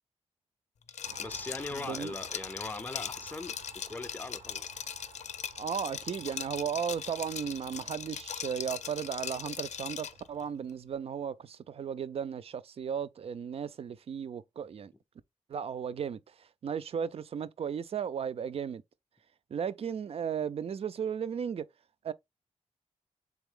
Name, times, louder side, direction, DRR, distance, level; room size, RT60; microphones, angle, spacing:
Liquid, 0.9-10.2, left 8 dB, 75° left, 0.5 m, -40 dB
voice 1, 0.9-3.6 3.9-4.7, left 3 dB, 15° left, 0.4 m, -40 dB
Car passing by, 1.0-10.4, right 5 dB, 80° right, 1.0 m, -54 dB
voice 2, 1.7-2.2 5.6-14.9 15.5-18.8 19.5-21.6 22.0-22.1, right 7 dB, 55° right, 0.4 m, -35 dB
4.0 x 3.5 x 3.5 m
wide cardioid pair, 120°, 12 cm